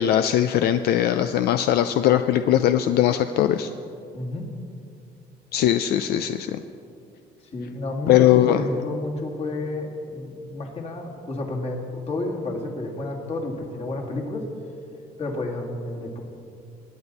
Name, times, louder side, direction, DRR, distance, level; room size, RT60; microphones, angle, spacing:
voice 1, 0.0-3.7 5.5-6.6 8.1-8.6, left 11 dB, 70° left, 9 dB, 0.5 m, -20 dB
voice 2, 4.1-4.5 7.5-14.5 15.2-16.2, left 2 dB, 35° left, 1 dB, 2.1 m, -30 dB
20.0 x 8.8 x 4.1 m, 2.5 s
cardioid pair, 110°, 17 cm